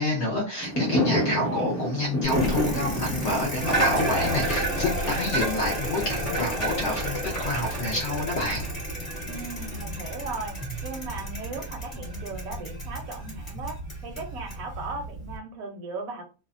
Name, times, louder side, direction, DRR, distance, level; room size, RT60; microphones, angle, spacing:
voice 1, 0.0-8.7, left 2 dB, 65° left, -1 dB, 0.7 m, -28 dB
Fireworks, 0.6-5.8, left 1 dB, 5° left, 0.5 m, -29 dB
voice 2, 1.2-1.7 9.2-16.2, right 3 dB, 70° right, 4 dB, 1.0 m, -37 dB
Bicycle, 2.2-15.4, right 1 dB, 25° left, 1.0 m, -31 dB
2.6 x 2.1 x 2.4 m, 0.33 s
omnidirectional pair, 1.6 m